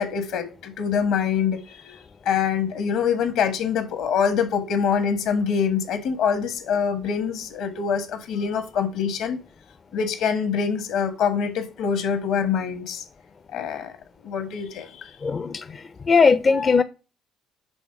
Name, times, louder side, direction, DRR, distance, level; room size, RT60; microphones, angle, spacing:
voice 1, 0.0-9.4 9.9-13.0 13.5-13.9 14.2-15.1, left 7 dB, 75° left, 1.4 m, -25 dB
voice 2, 15.2-15.6 16.1-16.8, left 5 dB, 35° left, 0.4 m, -18 dB
6.2 x 3.3 x 5.8 m
supercardioid pair, 75°, 0 cm